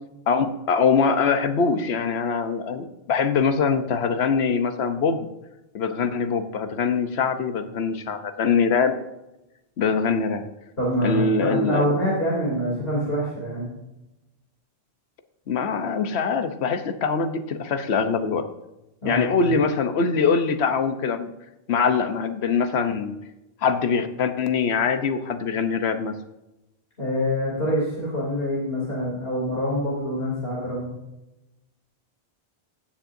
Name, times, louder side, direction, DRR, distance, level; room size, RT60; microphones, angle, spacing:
voice 1, 0.3-5.3 5.7-9.0 9.8-10.4 11.0-12.0 15.5-18.4 19.0-21.3 21.7-23.2 23.6-26.1, left 5 dB, 85° left, 8 dB, 1.1 m, -23 dB
voice 2, 10.8-13.7 19.0-19.4 27.0-30.9, equal, 65° left, -6 dB, 3.2 m, -25 dB
16.0 x 7.3 x 2.6 m, 0.95 s
omnidirectional pair, 1.1 m